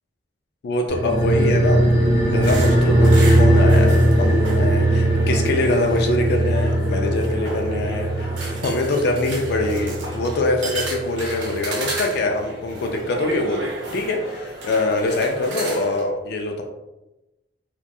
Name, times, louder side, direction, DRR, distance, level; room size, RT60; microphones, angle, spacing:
voice 1, 0.6-1.8 2.2-16.6, left 2 dB, 60° left, 2 dB, 0.3 m, -24 dB
sound 1, 0.9-11.7 12.0-12.1, right 1 dB, 35° right, 1.2 m, -19 dB
sound 2, 2.4-16.0, right 2 dB, 80° right, 0.7 m, -33 dB
2.6 x 2.2 x 2.2 m, 0.99 s
head